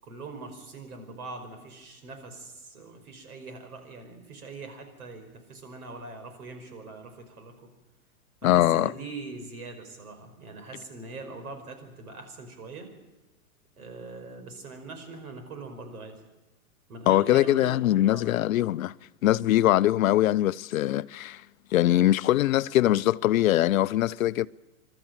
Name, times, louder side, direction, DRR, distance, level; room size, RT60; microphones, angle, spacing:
voice 1, 0.0-7.7 8.4-12.9 13.8-16.1 16.9-18.3, right 3 dB, 80° right, 5.3 m, -42 dB
voice 2, 8.4-8.9 17.1-18.9 19.2-21.4 21.7-24.5, left 14 dB, 65° left, 0.6 m, -22 dB
27.0 x 12.5 x 8.8 m
hypercardioid pair, 155°, 44 cm